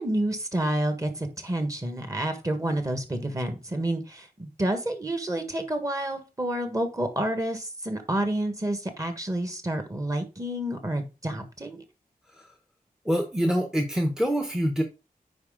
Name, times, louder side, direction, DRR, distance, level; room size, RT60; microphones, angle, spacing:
voice 1, 0.0-11.8, right 1 dB, 25° right, 7 dB, 1.5 m, -29 dB
voice 2, 13.0-14.8, equal, 5° right, 5 dB, 0.9 m, -25 dB
9.6 x 4.3 x 3.8 m, 0.28 s
wide cardioid pair, 105°, 15 cm